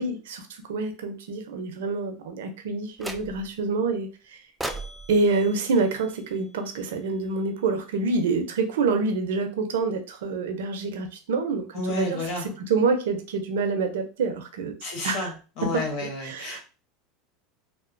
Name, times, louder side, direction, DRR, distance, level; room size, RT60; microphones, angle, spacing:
voice 1, 0.0-4.4 5.1-12.2 12.7-14.7 15.0-15.3 16.2-16.6, right 4 dB, 80° right, 7 dB, 0.5 m, -27 dB
sound 1, 3.0-3.6 4.6-6.8, right 2 dB, 5° right, 0.3 m, -38 dB
voice 2, 11.7-12.5 14.8-16.6, left 2 dB, 60° left, 1 dB, 1.2 m, -31 dB
2.9 x 2.0 x 2.5 m, 0.35 s
hypercardioid pair, 105°, 0 cm